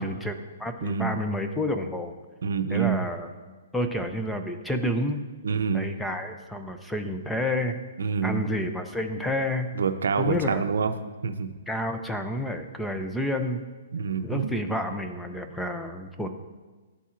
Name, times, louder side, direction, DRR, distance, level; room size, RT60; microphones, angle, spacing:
voice 1, 0.0-2.1 2.7-3.3 3.7-5.2 5.7-7.8 8.2-9.7 10.1-10.6 11.7-13.6 14.2-16.3, left 1 dB, 5° left, 5 dB, 0.4 m, -29 dB
voice 2, 0.8-1.2 2.4-3.1 5.4-5.9 8.0-8.4 9.8-10.9 11.2-11.5 13.9-14.5, right 6 dB, 85° right, 9 dB, 0.5 m, -26 dB
11.5 x 4.1 x 2.5 m, 1.3 s
hypercardioid pair, 160°, 0 cm